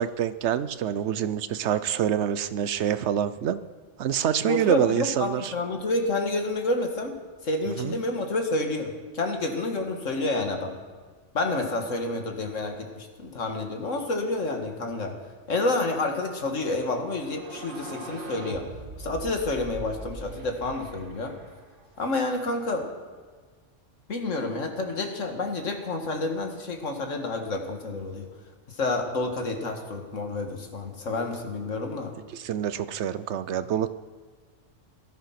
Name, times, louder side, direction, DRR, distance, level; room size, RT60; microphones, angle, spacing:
voice 1, 0.0-3.6 4.0-5.5 7.8-8.0 32.3-33.9, right 9 dB, 65° right, 13 dB, 0.9 m, -26 dB
voice 2, 4.4-7.1 7.4-10.7 11.3-15.1 15.5-18.7 19.0-21.3 22.0-22.9 24.1-28.3 28.7-32.1, left 2 dB, 75° left, 4 dB, 2.1 m, -29 dB
sound 1, 17.2-22.0, right 2 dB, 45° right, 1.4 m, -41 dB
18.0 x 13.0 x 5.9 m, 1.5 s
omnidirectional pair, 1.3 m